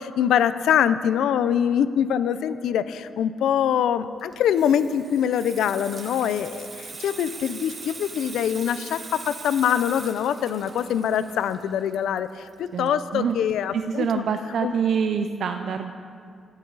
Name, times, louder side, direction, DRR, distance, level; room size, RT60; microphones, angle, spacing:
voice 1, 0.0-14.2 14.6-14.7, left 9 dB, 80° left, 13 dB, 0.5 m, -24 dB
Water tap faucet / Sink (filling or washing), 4.2-13.5 13.8-14.1, right 4 dB, 30° right, 1.1 m, -41 dB
voice 2, 12.7-13.4 13.7-15.9, right 7 dB, 55° right, 6 dB, 0.6 m, -26 dB
17.0 x 13.0 x 4.0 m, 2.3 s
cardioid pair, 155°, 0 cm